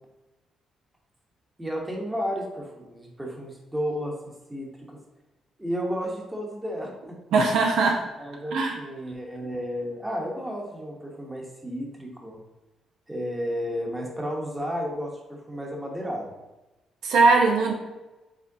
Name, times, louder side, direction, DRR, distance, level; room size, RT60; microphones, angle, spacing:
voice 1, 1.6-4.1 4.5-5.0 5.6-7.2 8.2-12.4 13.1-16.3, equal, 10° right, -1 dB, 1.0 m, -32 dB
voice 2, 7.3-8.0 8.5-8.7 17.0-17.7, right 3 dB, 80° right, 1 dB, 0.7 m, -20 dB
4.9 x 3.5 x 2.7 m, 1.1 s
cardioid pair, 90°, 0 cm